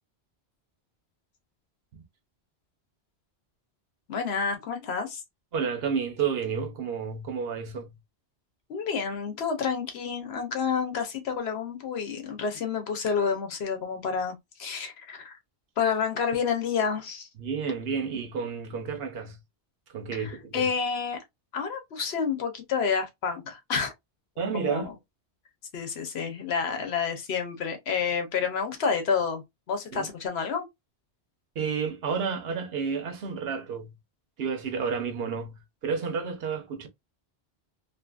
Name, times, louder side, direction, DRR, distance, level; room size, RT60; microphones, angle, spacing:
voice 1, 4.1-5.2 8.7-15.3 15.8-17.3 20.1-21.2 21.5-23.9 24.5-24.9 25.7-29.4 29.7-30.6, left 6 dB, 70° left, 1.0 m, -29 dB
voice 2, 5.5-8.0 17.4-19.4 19.9-20.7 24.4-24.9 29.9-30.1 31.6-33.9 34.4-36.9, right 6 dB, 70° right, 0.9 m, -31 dB
2.6 x 2.6 x 2.3 m
omnidirectional pair, 1.1 m